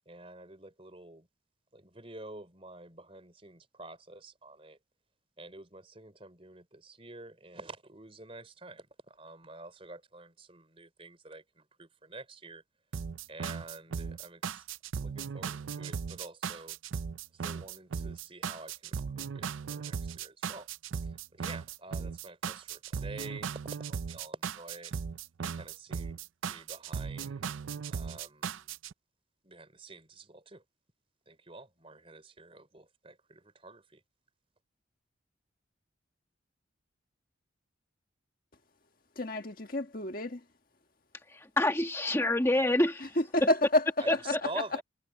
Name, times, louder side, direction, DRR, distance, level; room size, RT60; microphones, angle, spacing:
voice 1, 0.1-1.3 1.7-4.8 5.4-12.6 13.3-14.7 15.0-16.8 17.3-20.7 21.0-24.9 25.4-26.2 26.5-27.6 27.9-28.8 29.4-30.6 31.3-34.0 44.0-44.8, right 2 dB, 30° right, 4.2 m, -48 dB
sound 1, 12.9-28.9, right 6 dB, 90° right, 0.5 m, -37 dB
voice 2, 39.2-40.4 43.2-43.8 44.3-44.4, left 1 dB, 45° left, 1.7 m, -28 dB
voice 3, 41.3-42.9 44.1-44.4, left 1 dB, 15° left, 1.7 m, -27 dB
head